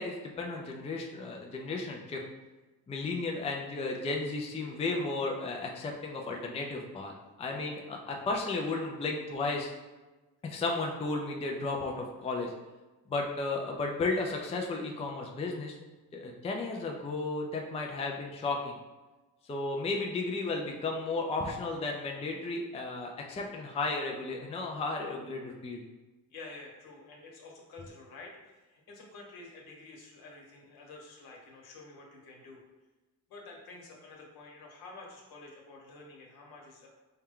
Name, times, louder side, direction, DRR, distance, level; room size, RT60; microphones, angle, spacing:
voice 1, 0.0-2.2 2.9-7.1 7.4-9.7 10.4-12.5 13.1-15.8 16.1-18.8 19.4-25.8, left 3 dB, 15° left, 1 dB, 0.4 m, -34 dB
voice 2, 26.3-32.6 33.3-36.9, left 3 dB, 70° left, -1 dB, 1.2 m, -49 dB
4.4 x 2.2 x 3.6 m, 1.2 s
cardioid pair, 95°, 38 cm